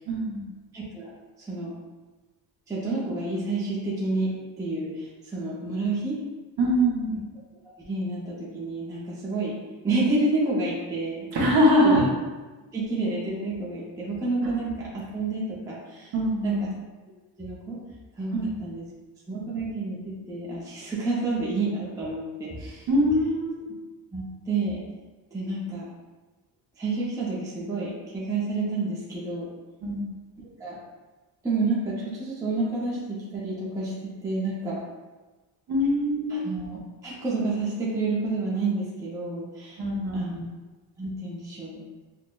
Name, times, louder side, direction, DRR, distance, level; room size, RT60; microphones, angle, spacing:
voice 1, 0.1-0.4 6.6-7.1 11.3-12.1 16.1-16.7 18.3-18.5 22.9-23.6 29.8-30.1 35.7-36.4 39.8-40.4, equal, 55° right, -3 dB, 0.8 m, -23 dB
voice 2, 0.7-1.1 1.4-1.7 2.7-6.2 7.9-9.6 9.8-11.3 11.8-12.0 12.7-16.1 16.4-16.7 17.4-17.8 18.2-18.8 19.3-22.9 24.1-24.8 25.3-25.9 26.8-29.5 30.6-30.8 31.4-34.8 36.3-39.8 40.1-40.4 41.0-41.8, right 3 dB, 10° right, -6 dB, 0.5 m, -29 dB
5.9 x 2.1 x 2.2 m, 1.2 s
cardioid pair, 170°, 45 cm